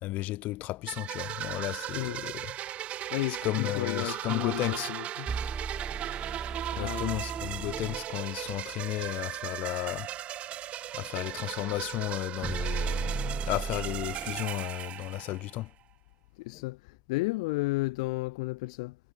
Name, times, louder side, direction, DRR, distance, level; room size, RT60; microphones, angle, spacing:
voice 1, 0.0-2.5 3.4-4.9 6.8-10.1 10.9-15.7 16.5-16.6, left 18 dB, 45° left, 2.0 m, -33 dB
sound 1, 0.9-15.6, right 12 dB, 35° right, 1.3 m, -37 dB
voice 2, 1.9-2.2 3.1-5.3 6.7-7.2 16.4-19.0, left 23 dB, 60° left, 0.5 m, -33 dB
sound 2, 5.3-8.1 12.4-14.5, right 5 dB, 15° right, 0.6 m, -35 dB
hypercardioid pair, 115°, 4 cm